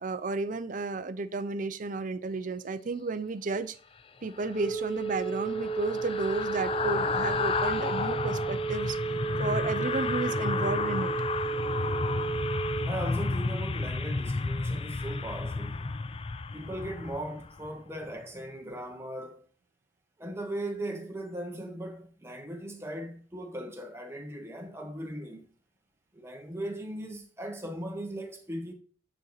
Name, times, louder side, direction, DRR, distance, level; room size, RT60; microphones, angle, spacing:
voice 1, 0.0-3.8 4.2-9.0 9.4-11.1, right 3 dB, 45° right, 0.5 m, -32 dB
sound 1, 4.3-17.7 18.0-18.2, left 4 dB, 30° left, 0.4 m, -32 dB
Telephone, 4.5-12.9, right 5 dB, 50° left, 1.1 m, -33 dB
voice 2, 12.9-15.9 16.5-19.4 20.2-25.5 26.1-28.7, right 1 dB, 15° right, 1.3 m, -38 dB
9.3 x 4.2 x 4.0 m
head